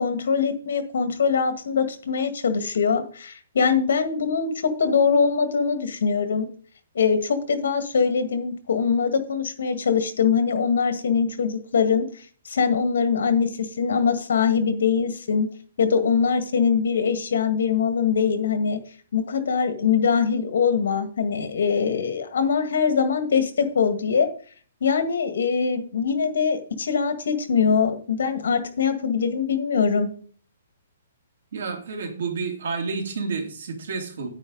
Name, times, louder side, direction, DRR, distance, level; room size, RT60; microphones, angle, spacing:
voice 1, 0.0-6.5 6.9-12.1 12.5-15.5 15.8-18.8 19.1-24.3 24.8-30.1, left 6 dB, 65° left, 9 dB, 1.8 m, -22 dB
voice 2, 31.5-34.3, right 4 dB, 60° right, 3 dB, 2.8 m, -30 dB
9.7 x 9.3 x 4.0 m, 0.43 s
hypercardioid pair, 180°, 0 cm